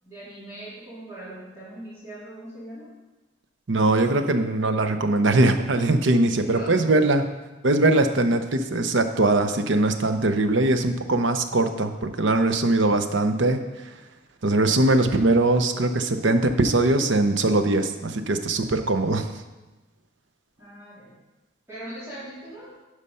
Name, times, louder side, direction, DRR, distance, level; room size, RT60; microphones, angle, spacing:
voice 1, 0.0-2.9 6.4-6.8 20.6-21.1 21.7-22.7, right 1 dB, 15° right, -11 dB, 3.6 m, -40 dB
voice 2, 3.7-7.3 7.6-13.9 14.4-19.3, right 2 dB, 70° right, 7 dB, 0.8 m, -21 dB
12.0 x 4.9 x 5.5 m, 1.1 s
head